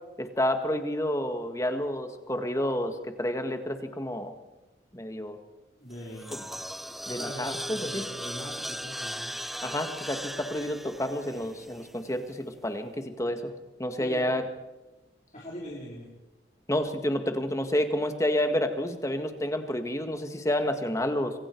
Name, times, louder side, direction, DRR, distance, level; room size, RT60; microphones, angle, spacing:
voice 1, 0.2-4.3 4.9-5.4 6.3-6.4 7.1-8.1 9.6-13.5 13.8-14.4 16.7-21.3, left 1 dB, 15° left, 6 dB, 1.9 m, -29 dB
voice 2, 5.8-6.5 6.9-9.3 14.0-14.3 15.3-16.1, equal, 40° left, -5 dB, 4.5 m, -41 dB
sound 1, 5.9-12.2, equal, ahead, 0.6 m, -38 dB
27.0 x 23.0 x 4.7 m, 1.1 s
head